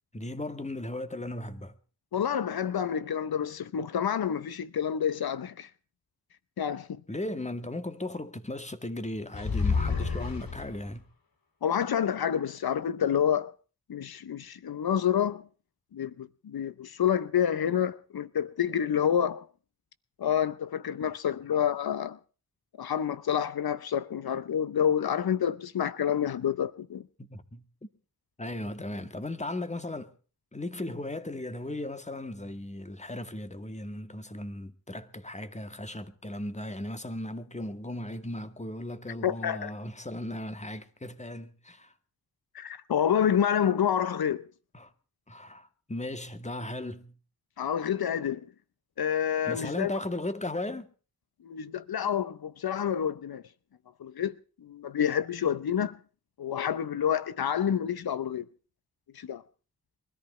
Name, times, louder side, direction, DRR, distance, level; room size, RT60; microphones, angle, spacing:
voice 1, 0.1-1.8 7.1-11.0 27.2-27.6 28.4-30.1 30.5-41.9 44.7-44.9 45.3-47.1 49.5-50.9, left 1 dB, 20° left, 2.0 m, -36 dB
voice 2, 2.1-5.7 6.6-7.0 11.6-13.5 13.9-15.4 15.9-19.5 20.2-22.2 22.8-27.0 39.2-39.7 42.5-44.4 47.6-48.5 49.0-49.9 51.4-53.4 54.0-54.4 54.6-56.0 56.4-58.5 59.1-59.4, left 8 dB, 85° left, 0.8 m, -28 dB
sound 1, 9.3-11.0, left 5 dB, 70° left, 3.0 m, -29 dB
23.0 x 14.0 x 4.4 m
wide cardioid pair, 75°, 36 cm